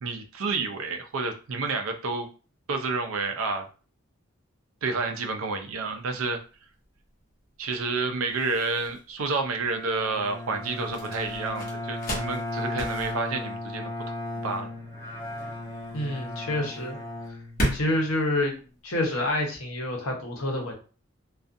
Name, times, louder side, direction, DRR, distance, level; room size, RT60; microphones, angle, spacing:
voice 1, 0.0-2.3 2.7-3.7 4.8-6.4 7.6-13.9 14.4-14.7, right 4 dB, 80° right, 5 dB, 0.5 m, -29 dB
sound 1, 5.6-19.4, equal, 45° left, 0.9 m, -37 dB
Bowed string instrument, 9.6-18.1, left 1 dB, 10° left, 0.5 m, -36 dB
voice 2, 15.9-17.0 17.3-17.4 17.7-18.5 18.8-20.7, left 1 dB, 80° left, 0 dB, 0.9 m, -27 dB
2.4 x 2.4 x 2.5 m, 0.36 s
head